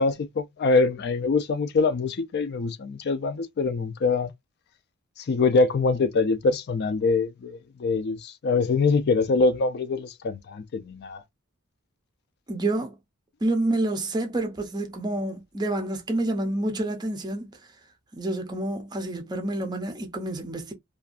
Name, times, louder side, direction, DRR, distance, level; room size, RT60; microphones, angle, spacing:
voice 1, 0.0-4.3 5.2-11.2, left 4 dB, 45° left, 0.4 m, -24 dB
voice 2, 12.5-13.0 13.4-17.5 18.2-20.7, right 2 dB, 20° right, 0.5 m, -28 dB
2.6 x 2.2 x 2.4 m
head